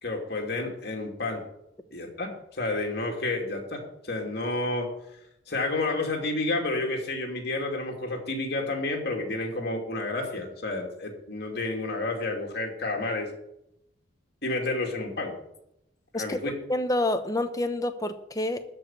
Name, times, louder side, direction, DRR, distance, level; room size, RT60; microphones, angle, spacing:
voice 1, 0.0-1.4 1.9-4.9 5.5-13.3 14.4-15.3 16.1-16.5, left 2 dB, 55° left, 2 dB, 2.6 m, -30 dB
voice 2, 16.7-18.6, left 1 dB, 15° left, 9 dB, 0.8 m, -28 dB
13.5 x 5.3 x 8.8 m, 0.82 s
head